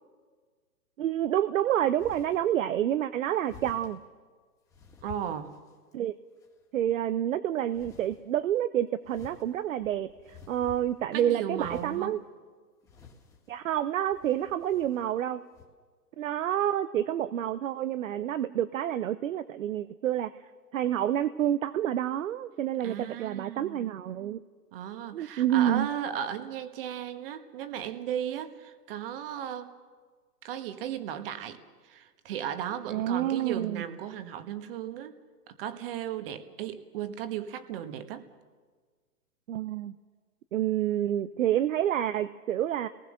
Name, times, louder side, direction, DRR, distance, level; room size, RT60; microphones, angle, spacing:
voice 1, 1.0-4.0 5.9-6.1 6.7-12.2 13.5-15.4 16.2-20.3 20.7-24.4 25.1-25.9 32.9-33.8 39.5-39.9 40.5-42.9, right 11 dB, 55° right, 0.8 m, -28 dB
sound 1, 2.0-2.5 3.5-4.0 4.7-5.9 6.4-6.9 7.7-8.2 9.0-11.1 11.6-12.1 12.8-13.6 14.1-15.1 15.5-15.7, left 6 dB, 5° left, 2.0 m, -51 dB
voice 2, 5.0-5.6 11.1-12.2 22.8-23.8 24.7-29.7 30.4-31.6 31.8-35.1 35.5-38.2, right 9 dB, 35° right, 1.6 m, -36 dB
29.5 x 19.5 x 6.5 m
hypercardioid pair, 150°, 47 cm